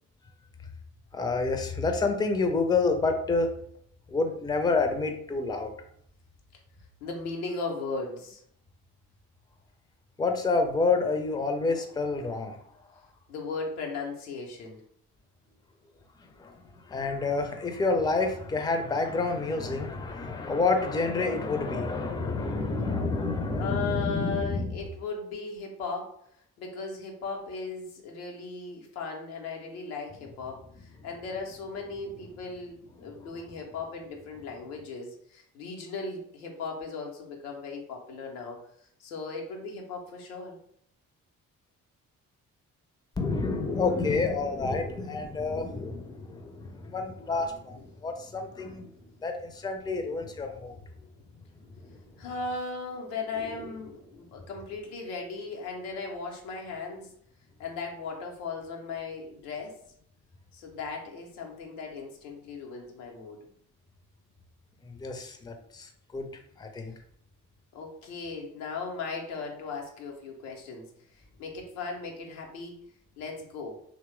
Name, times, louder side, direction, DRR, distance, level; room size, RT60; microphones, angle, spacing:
voice 1, 1.1-3.5 4.1-5.7 10.2-12.6 16.4-16.5 16.9-24.7 33.0-33.1 43.2-48.9 49.2-50.8 51.8-51.9 53.5-53.7 64.9-66.3 66.6-66.9, left 3 dB, 10° left, 5 dB, 0.5 m, -28 dB
voice 2, 7.0-8.4 13.3-14.8 23.6-26.1 26.6-38.6 39.0-40.6 47.8-47.9 52.2-57.1 57.6-59.8 60.5-63.4 67.7-70.9 71.1-72.8 73.2-73.8, left 4 dB, 85° left, 1 dB, 0.6 m, -37 dB
3.0 x 2.0 x 3.1 m, 0.67 s
hypercardioid pair, 40°, 44 cm